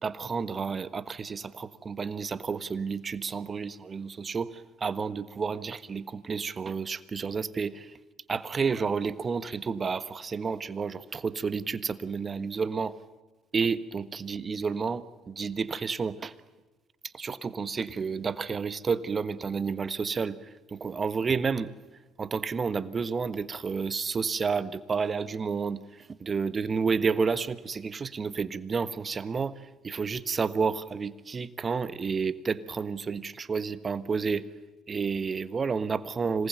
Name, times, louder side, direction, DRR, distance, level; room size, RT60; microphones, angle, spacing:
voice 1, 0.0-8.0 8.3-13.0 13.5-16.3 17.0-21.7 22.2-34.5 34.9-36.5, right 5 dB, 35° right, 15 dB, 1.4 m, -30 dB
26.5 x 19.5 x 9.2 m, 1.2 s
hypercardioid pair, 60°, 0 cm